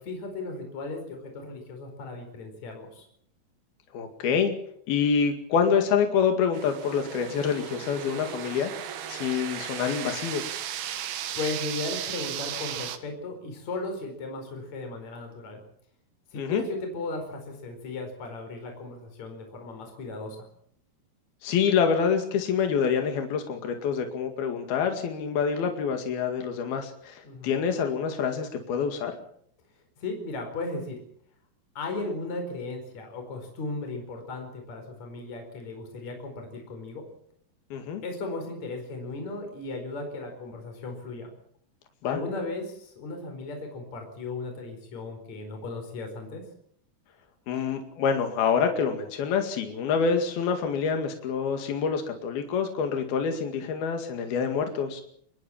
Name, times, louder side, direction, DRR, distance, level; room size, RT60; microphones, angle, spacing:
voice 1, 0.1-3.1 11.3-15.6 16.3-20.5 27.2-27.6 30.0-31.0 31.8-37.0 38.0-41.3 42.0-46.4, left 3 dB, 50° left, 4 dB, 5.8 m, -36 dB
voice 2, 3.9-4.5 4.9-10.4 16.3-16.6 21.4-29.1 37.7-38.0 42.0-42.2 47.5-55.0, left 6 dB, 80° left, 5 dB, 4.1 m, -26 dB
sound 1, 6.5-13.0, right 10 dB, 85° right, 3.5 m, -35 dB
24.5 x 19.5 x 7.4 m, 0.65 s
omnidirectional pair, 4.3 m